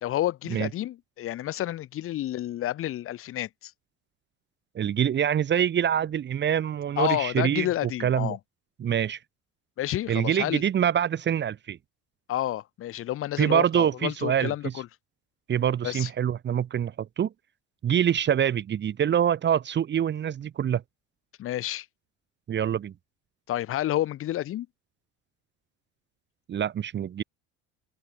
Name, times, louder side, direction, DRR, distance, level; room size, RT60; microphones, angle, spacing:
voice 1, 0.0-3.7 7.0-8.4 9.8-10.6 12.3-14.9 15.8-16.1 21.4-21.9 23.5-24.7, left 13 dB, 45° left, 0.9 m, -30 dB
voice 2, 4.7-8.3 8.8-9.2 10.1-11.8 13.4-14.5 15.5-17.3 17.8-20.8 22.5-22.9 26.5-27.2, right 9 dB, 40° right, 1.1 m, -25 dB
open air
supercardioid pair, 95°, 29 cm